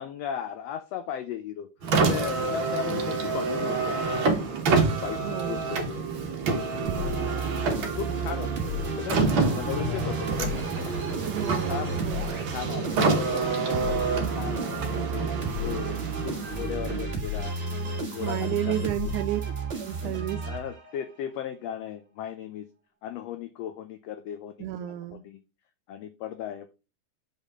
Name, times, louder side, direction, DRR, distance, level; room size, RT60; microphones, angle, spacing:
voice 1, 0.0-1.7 2.1-4.6 5.0-6.1 6.4-7.3 7.9-9.2 9.5-11.0 11.7-12.0 12.5-15.3 15.6-17.6 17.8-18.9 20.0-20.2 20.4-22.7 23.0-24.5 25.1-25.4 25.9-26.7, left 10 dB, 80° left, 8 dB, 1.5 m, -37 dB
Car, 1.8-17.2, right 4 dB, 50° right, 1.6 m, -28 dB
voice 2, 5.2-5.6 6.8-7.2 11.1-12.4 18.2-19.4 19.8-20.5 24.6-25.2, right 13 dB, 80° right, 8 dB, 2.0 m, -32 dB
sound 1, 6.8-21.1, right 2 dB, 30° right, 1.2 m, -33 dB
8.3 x 5.4 x 3.6 m, 0.31 s
omnidirectional pair, 3.6 m